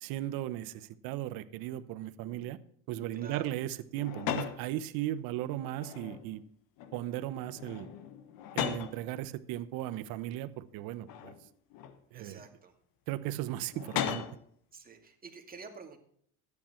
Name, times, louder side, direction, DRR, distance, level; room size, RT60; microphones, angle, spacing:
voice 1, 0.0-2.6 2.9-6.4 6.9-7.9 8.5-11.3 12.1-12.5 13.1-14.3, right 13 dB, 75° right, 0.9 m, -36 dB
voice 2, 3.1-3.6 12.1-12.7 14.7-16.0, right 4 dB, 25° right, 2.4 m, -49 dB
sound 1, 3.9-4.6 5.7-6.4 6.8-7.1 7.5-9.0 9.8-9.9 11.1-12.0 13.7-14.4, left 10 dB, 70° left, 1.2 m, -37 dB
13.5 x 10.0 x 4.4 m
cardioid pair, 110°, 35 cm